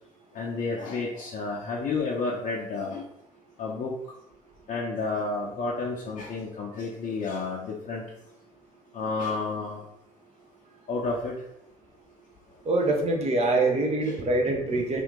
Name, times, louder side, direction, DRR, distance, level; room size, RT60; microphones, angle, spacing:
voice 1, 0.3-3.0 3.6-3.9 4.7-8.0 8.9-9.8 10.9-11.3, left 3 dB, 40° left, -4 dB, 0.7 m, -31 dB
voice 2, 12.6-15.0, right 2 dB, 35° right, 2 dB, 0.8 m, -24 dB
2.8 x 2.5 x 3.6 m, 0.80 s
figure-of-eight pair, 55°, 19 cm